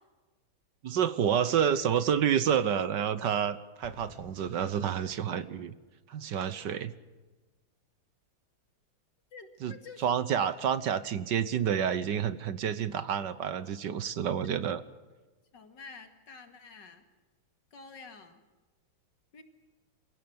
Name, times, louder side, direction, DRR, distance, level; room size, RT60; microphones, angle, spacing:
voice 1, 0.8-5.7 6.1-6.9 9.6-14.8, right 8 dB, 65° right, 14 dB, 1.5 m, -29 dB
Explosion, 3.8-5.6, equal, 30° left, 6.3 m, -53 dB
voice 2, 9.3-10.1 15.5-17.0 17.7-18.4 19.3-19.4, left 4 dB, 60° left, 7 dB, 2.8 m, -49 dB
27.5 x 16.0 x 7.9 m, 1.2 s
omnidirectional pair, 2.1 m